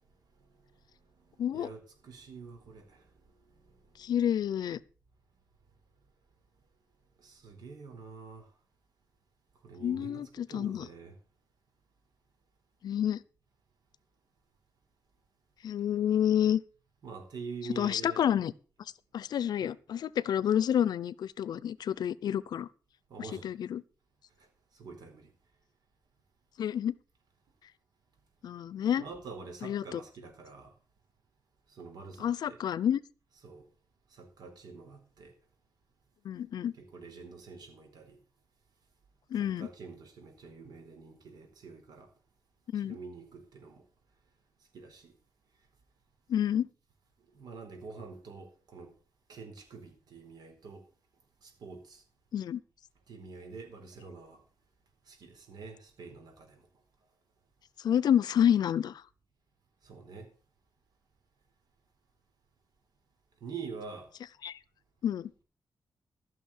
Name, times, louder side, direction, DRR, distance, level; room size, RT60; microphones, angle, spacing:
voice 1, 1.3-3.3 3.6-4.1 7.2-8.5 9.6-11.2 17.0-18.2 19.6-19.7 23.1-23.5 24.7-25.3 29.0-30.7 31.7-32.6 33.4-33.6 34.1-35.3 36.7-38.2 39.3-42.1 42.8-43.8 44.7-45.1 47.3-48.9 49.3-50.9 51.4-52.0 53.1-54.4 55.1-56.7 59.8-60.3 63.4-64.1, right 4 dB, 80° right, 4.3 m, -46 dB
voice 2, 4.0-4.8 9.8-10.9 12.8-13.2 15.6-16.6 17.8-18.5 19.1-22.7 23.4-23.8 26.6-26.9 28.4-29.0 29.6-30.0 32.2-33.0 36.2-36.7 39.3-39.7 42.7-43.0 46.3-46.7 52.3-52.6 57.8-59.0 64.4-64.6 65.0-65.3, left 9 dB, 80° left, 0.6 m, -29 dB
14.5 x 6.2 x 7.3 m
wide cardioid pair, 120°, 7 cm